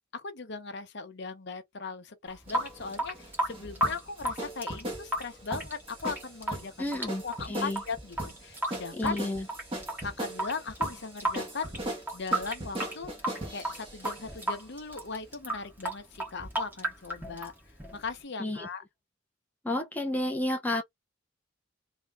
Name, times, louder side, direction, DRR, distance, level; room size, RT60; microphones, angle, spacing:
voice 1, 0.1-6.9 7.2-9.2 10.0-13.1 13.5-18.8, left 4 dB, 60° left, 0.9 m, -39 dB
Water tap faucet / Sink (filling or washing) / Drip, 2.3-18.2, right 1 dB, 10° right, 1.4 m, -35 dB
sound 1, 2.5-14.5, right 1 dB, 25° right, 1.6 m, -39 dB
voice 2, 6.8-7.2 7.5-7.8 9.0-9.4 18.4-18.7 19.6-20.8, left 1 dB, 10° left, 0.7 m, -30 dB
3.0 x 3.0 x 3.7 m
head